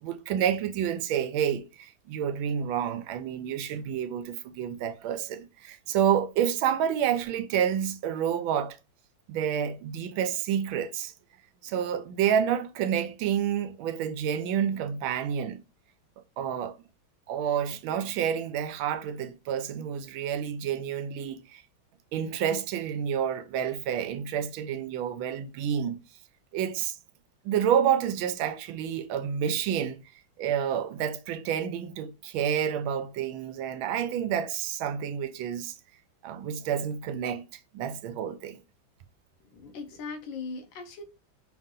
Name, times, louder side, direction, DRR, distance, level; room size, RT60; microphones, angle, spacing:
voice 1, 0.0-8.8 9.3-11.1 11.6-15.6 16.4-16.8 17.3-21.6 22.1-26.0 26.5-27.0 27.4-30.0 30.4-35.7 36.2-37.4 37.7-38.6, right 9 dB, 90° right, 1.4 m, -29 dB
voice 2, 39.5-41.0, left 4 dB, 70° left, 1.7 m, -39 dB
5.2 x 2.7 x 3.7 m
omnidirectional pair, 2.2 m